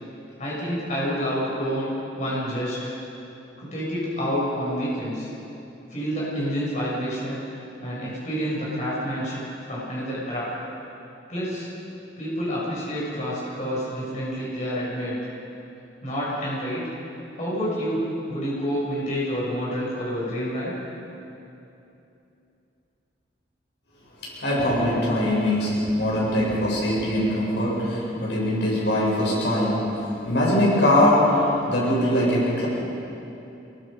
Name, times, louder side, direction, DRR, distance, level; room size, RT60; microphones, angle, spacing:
voice 1, 0.4-1.9 2.2-2.9 3.6-5.3 5.9-7.4 7.8-10.5 11.3-11.7 12.2-15.3 16.0-16.8 17.3-18.0 18.3-20.7, equal, 40° left, -7 dB, 7.3 m, -28 dB
voice 2, 24.2-32.7, left 1 dB, 65° left, -5 dB, 7.1 m, -22 dB
26.5 x 22.5 x 5.4 m, 2.8 s
head